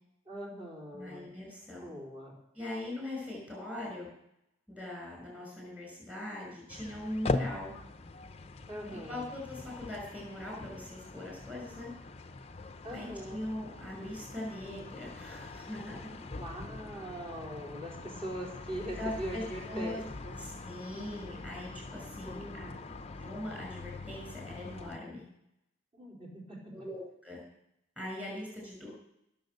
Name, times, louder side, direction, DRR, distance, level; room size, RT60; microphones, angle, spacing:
voice 1, 0.3-1.3 1.8-2.3 8.7-9.3 12.8-13.4 16.4-20.3 22.2-22.8 25.9-26.7, right 1 dB, 30° right, -2 dB, 4.1 m, -41 dB
voice 2, 0.9-1.9 2.5-4.1 4.7-7.7 8.9-11.9 12.9-16.2 19.0-20.0 20.4-22.6 23.2-25.2 26.7-27.4 28.0-28.9, left 1 dB, 5° right, -1 dB, 6.1 m, -41 dB
sound 1, 6.7-25.0, left 2 dB, 30° left, 0.6 m, -42 dB
19.0 x 7.3 x 6.6 m, 0.81 s
head